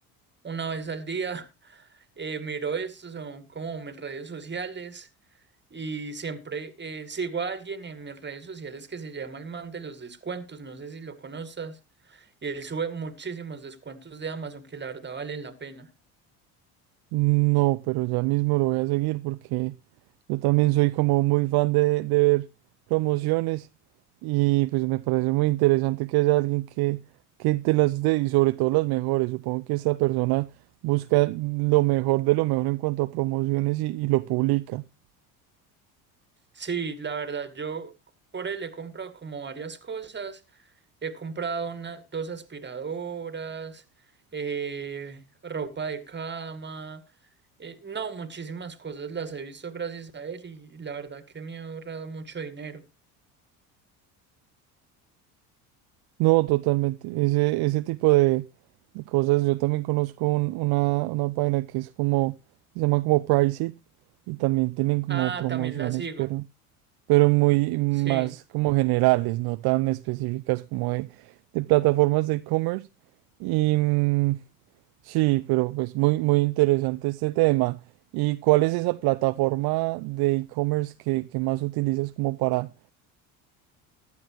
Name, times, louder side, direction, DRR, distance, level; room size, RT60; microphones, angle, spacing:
voice 1, 0.4-5.1 5.7-11.8 12.0-15.9 36.5-37.9 38.3-40.7 41.0-43.8 44.3-47.0 47.6-52.8 65.1-66.3 68.0-68.3, right 5 dB, 25° right, 2.0 m, -35 dB
voice 2, 17.1-19.7 20.3-22.5 22.9-23.7 24.2-27.0 27.4-30.5 30.8-34.8 56.2-58.4 58.9-62.3 62.8-63.7 64.3-66.4 67.1-72.9 73.4-74.4 75.0-77.8 78.1-82.7, right 21 dB, 60° right, 0.5 m, -23 dB
15.0 x 11.0 x 3.0 m
hypercardioid pair, 75°, 44 cm